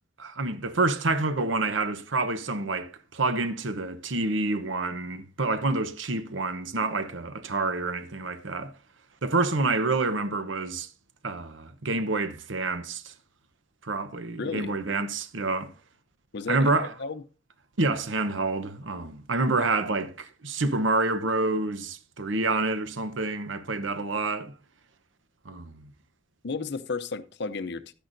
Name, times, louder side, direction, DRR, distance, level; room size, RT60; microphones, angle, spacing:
voice 1, 0.2-8.7 9.2-10.9 11.2-13.1 13.8-15.7 16.5-16.9 17.8-24.5 25.4-25.9, right 3 dB, 75° right, 0.9 m, -28 dB
voice 2, 14.4-14.7 16.3-17.2 19.6-19.8 26.4-27.9, left 4 dB, 60° left, 0.7 m, -33 dB
12.0 x 10.0 x 2.6 m
head